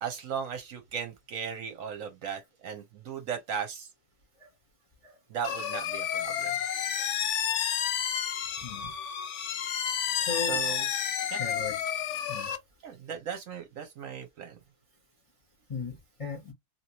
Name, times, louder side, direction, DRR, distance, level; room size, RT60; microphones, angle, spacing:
voice 1, 0.0-3.9 5.3-6.5 10.4-10.9 11.3-11.4 12.8-14.6, right 7 dB, 65° right, 1.0 m, -37 dB
sound 1, 5.4-12.6, left 9 dB, 65° left, 0.8 m, -31 dB
voice 2, 8.6-8.9 10.2-10.6 11.3-11.8 12.3-12.5 15.7-16.5, left 4 dB, 30° left, 0.7 m, -36 dB
2.9 x 2.8 x 2.8 m
omnidirectional pair, 1.7 m